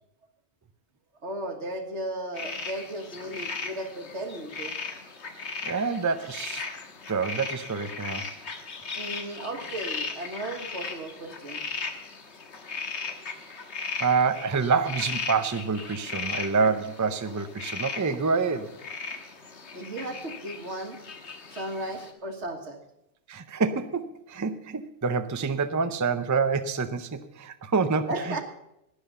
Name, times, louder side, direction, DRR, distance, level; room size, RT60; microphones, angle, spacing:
voice 1, 1.2-4.8 9.0-11.7 19.7-21.0 21.5-22.8 27.9-28.4, right 1 dB, 80° right, 5 dB, 2.0 m, -35 dB
sound 1, 2.3-22.1, left 4 dB, 75° left, 1.7 m, -37 dB
voice 2, 5.6-6.6 7.1-8.3 14.0-18.8 23.3-28.4, right 5 dB, 20° right, 10 dB, 0.5 m, -27 dB
12.5 x 9.8 x 6.7 m, 0.83 s
omnidirectional pair, 1.2 m